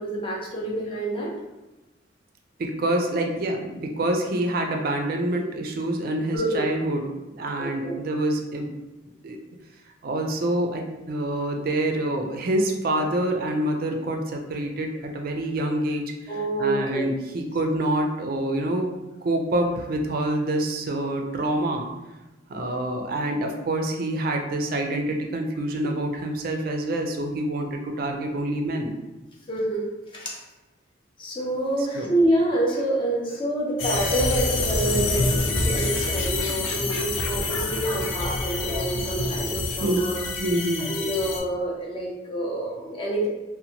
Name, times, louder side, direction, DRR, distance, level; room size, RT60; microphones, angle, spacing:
voice 1, 0.0-1.3 6.3-6.7 7.4-8.2 16.3-17.1 29.5-30.5 31.2-40.2 40.8-43.3, right 1 dB, 25° left, -3 dB, 0.5 m, -27 dB
voice 2, 2.6-7.0 7.4-8.7 9.2-9.4 10.0-16.0 16.6-18.9 19.2-21.9 22.5-28.9 31.9-32.1 39.8-40.0 40.4-40.9, right 1 dB, 50° right, 3 dB, 0.4 m, -26 dB
sound 1, 33.8-41.4, left 2 dB, 90° left, 0.4 m, -26 dB
2.6 x 2.1 x 2.8 m, 1.0 s
head